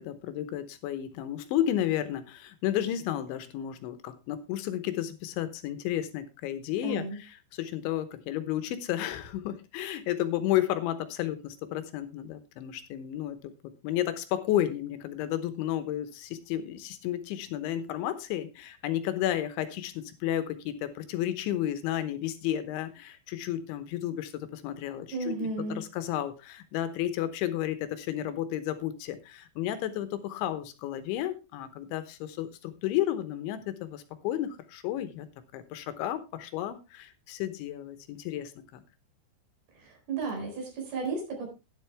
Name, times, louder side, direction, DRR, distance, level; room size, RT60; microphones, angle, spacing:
voice 1, 0.0-35.3 35.5-38.8, left 12 dB, 80° left, 11 dB, 3.4 m, -32 dB
voice 2, 6.8-7.2 25.1-25.8 39.8-41.5, right 3 dB, 55° right, 2 dB, 6.0 m, -34 dB
12.5 x 10.5 x 3.4 m, 0.27 s
omnidirectional pair, 5.4 m